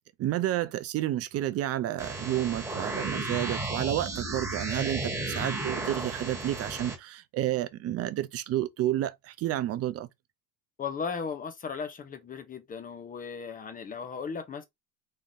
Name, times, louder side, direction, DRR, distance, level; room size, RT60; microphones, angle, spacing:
voice 1, 0.2-10.1, right 13 dB, 40° right, 0.5 m, -30 dB
sound 1, 2.0-7.0, right 2 dB, 5° right, 1.5 m, -34 dB
voice 2, 10.8-14.6, left 6 dB, 20° left, 0.8 m, -36 dB
3.8 x 3.2 x 2.7 m
cardioid pair, 130°, 39 cm